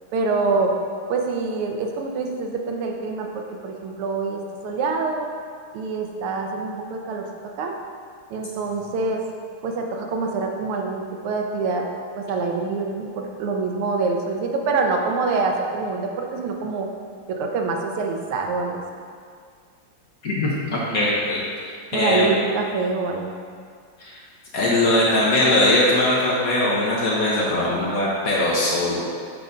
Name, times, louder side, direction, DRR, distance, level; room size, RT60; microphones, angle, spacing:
voice 1, 0.1-0.7 1.1-5.3 5.7-7.3 7.6-7.7 8.3-9.2 9.6-11.9 12.2-16.9 17.3-18.8 21.9-23.4, right 4 dB, 90° right, 2 dB, 1.6 m, -25 dB
voice 2, 20.2-21.4 21.9-22.3 24.0-24.2 24.5-29.1, left 1 dB, 55° left, -6 dB, 1.1 m, -20 dB
6.9 x 3.9 x 5.0 m, 2.1 s
omnidirectional pair, 2.3 m